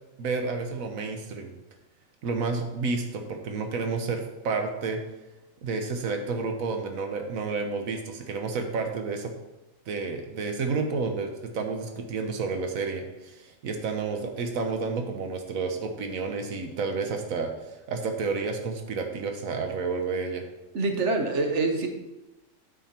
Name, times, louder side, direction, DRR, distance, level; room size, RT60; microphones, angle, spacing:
voice 1, 0.2-1.5 2.2-5.0 5.6-9.3 9.9-20.4, right 4 dB, 85° right, 5 dB, 1.3 m, -30 dB
voice 2, 20.7-21.9, right 3 dB, 60° right, 4 dB, 1.4 m, -25 dB
9.2 x 6.2 x 4.3 m, 1.0 s
omnidirectional pair, 1.4 m